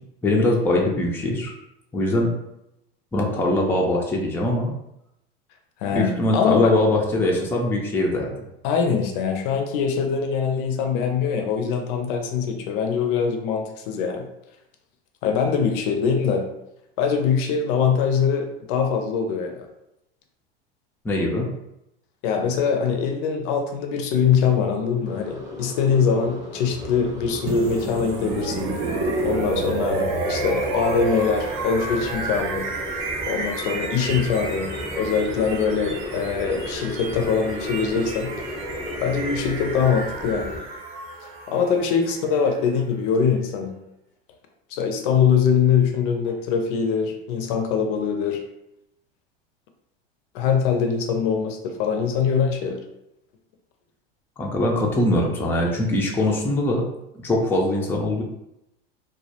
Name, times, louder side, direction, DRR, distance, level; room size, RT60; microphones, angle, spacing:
voice 1, 0.2-1.5 1.9-2.3 3.1-4.7 5.9-8.5 21.0-21.5 54.4-56.8 57.2-58.2, left 1 dB, 10° left, -1 dB, 0.4 m, -22 dB
voice 2, 5.8-6.7 8.6-14.3 15.2-16.4 17.0-19.7 22.2-28.8 29.2-32.6 33.3-38.3 39.0-40.6 41.5-43.7 44.7-48.4 50.3-52.8, left 6 dB, 60° left, 4 dB, 0.5 m, -23 dB
sound 1, 25.0-40.6, left 1 dB, 10° right, 0.8 m, -35 dB
sound 2, 27.5-43.3, right 3 dB, 45° right, 0.6 m, -31 dB
2.2 x 2.1 x 2.8 m, 0.84 s
hypercardioid pair, 95°, 30 cm